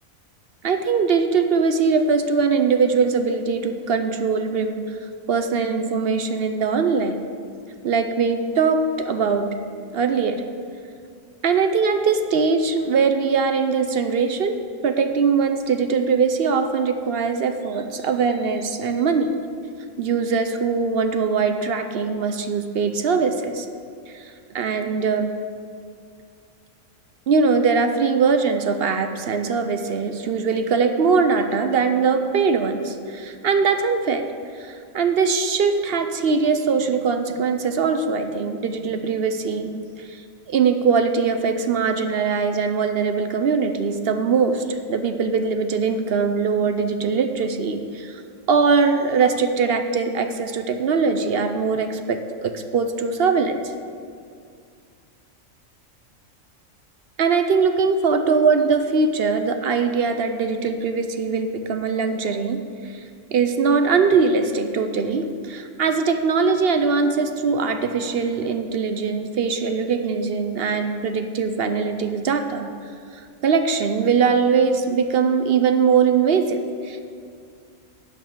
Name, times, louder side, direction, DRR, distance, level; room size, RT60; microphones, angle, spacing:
voice 1, 0.6-5.0 5.3-7.2 7.8-9.5 9.9-10.4 11.4-19.4 20.0-23.7 24.1-25.3 27.3-34.2 34.6-39.7 40.0-40.2 40.5-48.2 48.5-53.6 57.2-63.0 63.3-72.7 73.4-77.0, right 5 dB, 55° right, 8 dB, 0.7 m, -21 dB
11.5 x 5.5 x 7.8 m, 2.2 s
omnidirectional pair, 1.4 m